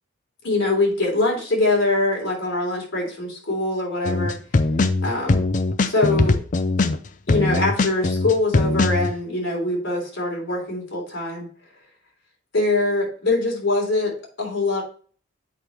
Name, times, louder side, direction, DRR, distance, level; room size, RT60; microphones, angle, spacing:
voice 1, 0.4-4.4 5.0-5.4 5.8-6.4 7.3-11.5 12.5-14.8, left 2 dB, 70° left, -2 dB, 3.3 m, -23 dB
sound 1, 4.0-9.1, left 3 dB, 40° left, 0.4 m, -20 dB
8.2 x 5.1 x 3.0 m, 0.44 s
head